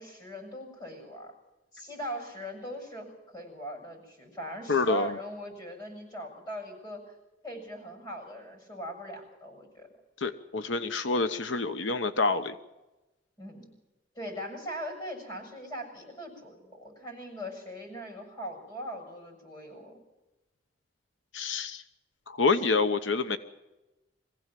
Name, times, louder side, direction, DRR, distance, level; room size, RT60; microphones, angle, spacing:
voice 1, 0.0-1.3 1.7-7.0 7.4-9.9 13.4-13.7 14.2-20.0, equal, 20° left, 3 dB, 7.0 m, -40 dB
voice 2, 4.7-5.2 10.2-12.6 21.3-21.8 22.3-23.4, left 4 dB, 90° left, 10 dB, 1.0 m, -27 dB
23.5 x 16.0 x 7.6 m, 1.0 s
head